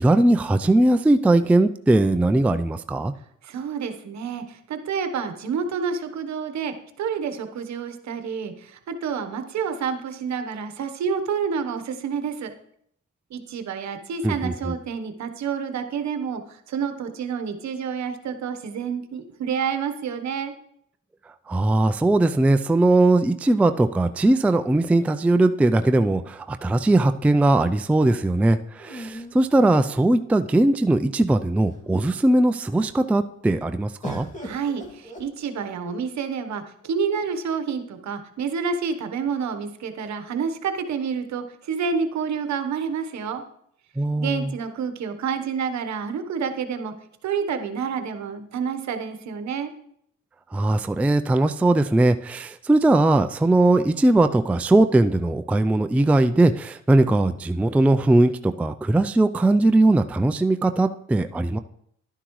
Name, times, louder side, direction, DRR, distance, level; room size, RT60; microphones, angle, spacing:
voice 1, 0.0-3.1 14.2-14.7 21.5-34.3 44.0-44.5 50.5-61.6, right 2 dB, 5° right, 9 dB, 0.3 m, -20 dB
voice 2, 3.4-12.5 13.3-20.5 34.4-43.4 44.2-46.9 47.2-49.7, right 6 dB, 65° right, 8 dB, 1.1 m, -29 dB
sound 1, 25.7-26.8 28.8-30.3 31.1-31.2 31.5-32.1 34.0-35.9 36.8-37.5, equal, 25° left, 2.3 m, -41 dB
11.5 x 10.0 x 3.1 m, 0.70 s
cardioid pair, 90°, 30 cm